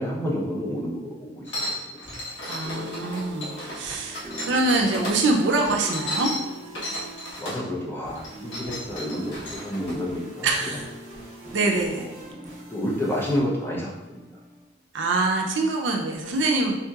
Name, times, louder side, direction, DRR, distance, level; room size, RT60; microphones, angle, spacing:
voice 1, 0.0-2.0 7.4-10.8 11.9-12.1 12.7-14.3, equal, 10° left, -4 dB, 0.6 m, -30 dB
sound 1, 1.5-5.2 5.6-7.7 8.1-9.9, left 1 dB, 70° left, 1.0 m, -34 dB
sound 2, 1.8-14.6, equal, 40° right, 0.9 m, -42 dB
voice 2, 2.5-6.3 10.4-10.9 11.5-12.1 14.9-16.8, right 2 dB, 70° right, 1 dB, 0.5 m, -24 dB
3.6 x 2.8 x 2.3 m, 1.0 s
head